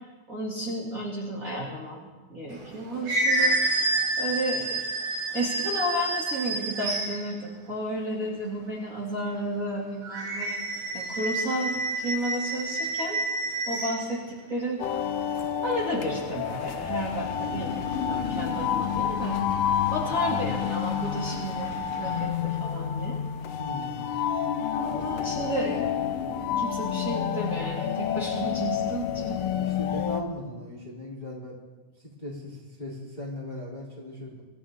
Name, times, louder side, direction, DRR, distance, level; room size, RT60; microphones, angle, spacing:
voice 1, 0.3-3.6 4.2-4.8 5.3-10.6 10.9-13.2 13.7-14.8 15.6-19.4 19.9-23.2 24.7-25.9 26.2-29.4, right 1 dB, 25° right, -6 dB, 2.9 m, -32 dB
sound 1, 2.6-7.3 10.0-14.0, right 2 dB, 70° right, 4.0 m, -28 dB
sound 2, 14.8-30.2, left 9 dB, 80° left, 1.5 m, -29 dB
sound 3, 16.6-22.3, left 2 dB, 50° left, 3.6 m, -42 dB
voice 2, 23.6-24.1 24.9-25.1 29.6-31.6 32.0-34.4, left 1 dB, 10° left, -5 dB, 3.2 m, -38 dB
25.5 x 14.5 x 3.8 m, 1.2 s
omnidirectional pair, 3.9 m